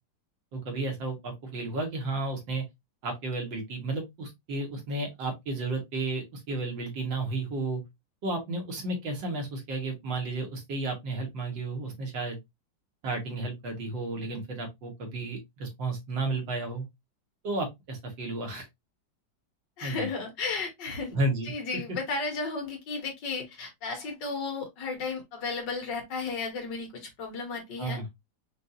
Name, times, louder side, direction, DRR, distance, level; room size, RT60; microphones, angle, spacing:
voice 1, 0.5-2.6 3.0-7.8 8.2-12.4 13.0-16.9 17.4-18.7 19.8-20.1 21.1-21.8 27.8-28.1, right 2 dB, 75° right, 2.1 m, -32 dB
voice 2, 19.8-21.2 21.5-28.2, left 4 dB, 70° left, 1.9 m, -34 dB
5.2 x 2.7 x 2.7 m
omnidirectional pair, 2.0 m